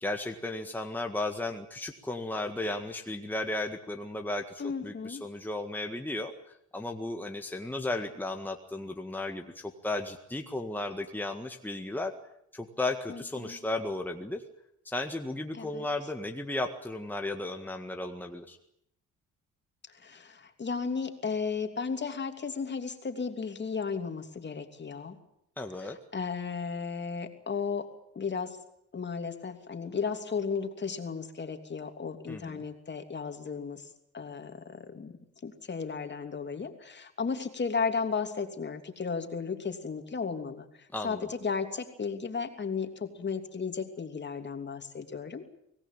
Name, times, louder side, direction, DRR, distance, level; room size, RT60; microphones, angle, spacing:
voice 1, 0.0-6.3 6.7-12.1 12.5-14.4 14.9-18.6 25.6-26.0 32.3-32.6 40.9-41.3, left 2 dB, 5° left, 4 dB, 1.8 m, -34 dB
voice 2, 4.6-5.2 13.1-13.6 15.5-15.9 20.0-25.2 25.8-27.9 28.1-28.6 28.9-33.9 34.1-35.1 35.4-40.7 41.0-45.5, left 5 dB, 35° left, 6 dB, 3.1 m, -34 dB
25.0 x 18.0 x 9.1 m, 0.74 s
cardioid pair, 90°, 30 cm